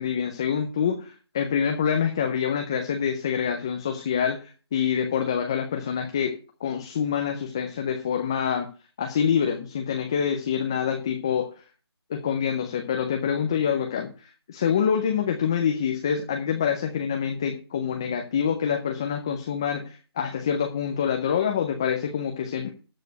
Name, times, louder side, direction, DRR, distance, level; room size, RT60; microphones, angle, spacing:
voice 1, 0.0-6.4 6.6-8.7 9.0-11.5 12.1-22.7, left 7 dB, 10° left, 5 dB, 0.4 m, -26 dB
13.5 x 4.9 x 6.5 m, 0.35 s
figure-of-eight pair, 165°, 14 cm